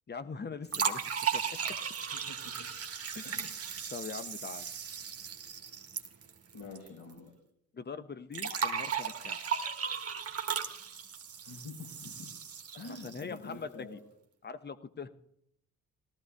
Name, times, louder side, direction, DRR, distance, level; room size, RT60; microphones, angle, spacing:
voice 1, 0.1-1.0 1.3-1.4 3.1-3.5 3.9-4.7 7.7-9.4 13.0-13.7 14.4-15.1, left 5 dB, 25° left, 12 dB, 0.9 m, -42 dB
sound 1, 0.7-6.9 7.1-7.2 8.3-13.4, right 7 dB, 35° right, 1.6 m, -36 dB
voice 2, 2.1-2.7 3.2-3.5 6.5-7.3 11.4-12.3 12.7-14.0, left 3 dB, 60° left, -3 dB, 4.4 m, -47 dB
21.0 x 13.5 x 2.3 m, 0.74 s
figure-of-eight pair, 45°, 43 cm